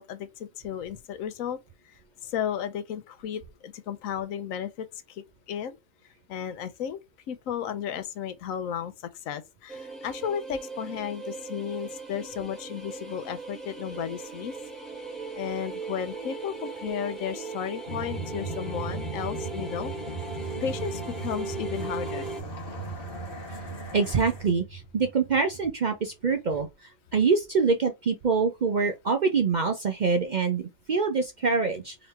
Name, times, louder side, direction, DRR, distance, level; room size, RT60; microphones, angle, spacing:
voice 1, 0.0-1.6 2.2-5.8 6.3-7.0 7.3-8.9 9.3-14.5 15.3-19.9 20.6-22.3, left 9 dB, 85° left, 1.0 m, -34 dB
sound 1, 9.7-22.4, right 4 dB, ahead, 0.8 m, -38 dB
sound 2, 17.9-26.0, right 2 dB, 45° left, 1.1 m, -37 dB
voice 2, 23.9-26.7 27.1-32.0, right 4 dB, 50° right, 0.5 m, -25 dB
3.9 x 3.1 x 3.1 m
omnidirectional pair, 1.4 m